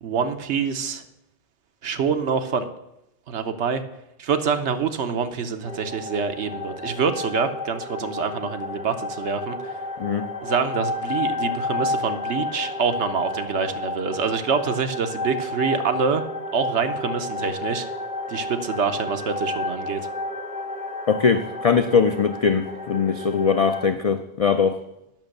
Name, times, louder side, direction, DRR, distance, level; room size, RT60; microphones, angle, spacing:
voice 1, 0.0-1.0 1.8-2.7 3.3-3.8 4.2-9.6 10.4-16.2 16.5-17.9 18.3-20.0, right 6 dB, 75° right, 8 dB, 1.1 m, -26 dB
sound 1, 5.6-23.9, left 2 dB, 10° right, 0.6 m, -31 dB
voice 2, 21.1-24.8, left 6 dB, 70° left, 8 dB, 0.3 m, -21 dB
9.0 x 6.2 x 6.5 m, 0.86 s
omnidirectional pair, 1.2 m